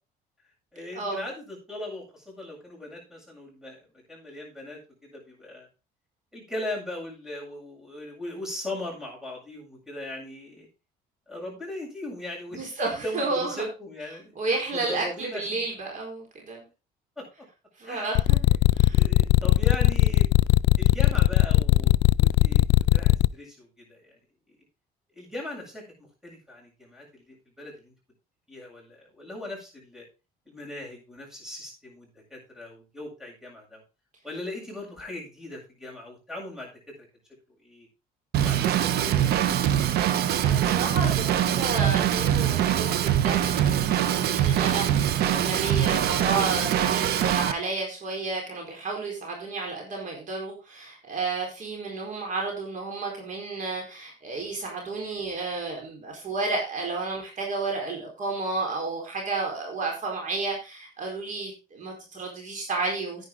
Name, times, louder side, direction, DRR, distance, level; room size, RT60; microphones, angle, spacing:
voice 1, 0.7-3.8 4.1-5.7 6.3-10.7 11.3-12.6 13.0-15.6 17.2-17.3 17.8-18.1 18.9-20.3 20.8-22.7 22.9-24.2 25.1-25.9 26.2-27.9 28.5-30.1 30.5-33.8 34.2-36.9 37.6-37.9 38.4-39.4, left 1 dB, 5° right, -2 dB, 7.8 m, -39 dB
voice 2, 12.5-13.6 14.4-16.6 17.8-18.4 18.7-19.0 40.4-63.3, right 3 dB, 50° right, 0 dB, 4.5 m, -31 dB
sound 1, 18.2-23.3, left 19 dB, 85° left, 0.4 m, -18 dB
Drum kit / Drum, 38.3-47.5, right 10 dB, 70° right, 1.0 m, -23 dB
10.0 x 9.8 x 3.9 m, 0.30 s
cardioid pair, 110°, 17 cm